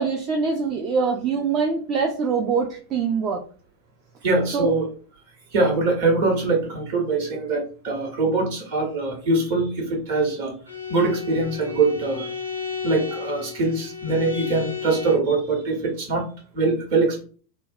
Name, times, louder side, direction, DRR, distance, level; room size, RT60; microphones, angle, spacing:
voice 1, 0.0-3.4 4.5-4.7, right 5 dB, 35° right, 1 dB, 0.4 m, -23 dB
voice 2, 4.2-4.9 5.5-10.5 10.9-12.3 12.8-16.3 16.5-17.2, right 3 dB, 55° right, -1 dB, 1.2 m, -23 dB
Bowed string instrument, 10.7-15.3, left 6 dB, 85° left, 0.6 m, -33 dB
2.8 x 2.2 x 2.6 m, 0.40 s
figure-of-eight pair, 90°, 0 cm